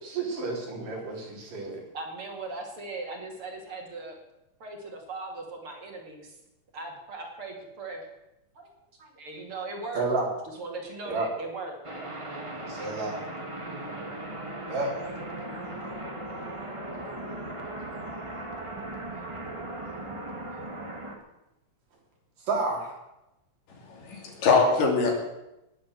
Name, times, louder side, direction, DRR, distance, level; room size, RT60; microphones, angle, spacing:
voice 1, 0.0-1.8 9.9-10.3 11.1-11.3 12.7-13.1 14.7-14.9 22.5-22.9, right 3 dB, 75° right, -1 dB, 4.9 m, -30 dB
voice 2, 1.9-4.1 4.6-6.4 6.7-8.1 8.5-8.7 9.0-10.1 10.5-11.8, right 3 dB, 45° right, 2 dB, 3.1 m, -38 dB
sound 1, 11.8-21.1, right 1 dB, 15° right, 1.3 m, -37 dB
voice 3, 23.7-25.1, left 4 dB, 75° left, 1 dB, 4.5 m, -23 dB
19.5 x 7.6 x 7.6 m, 0.92 s
omnidirectional pair, 3.8 m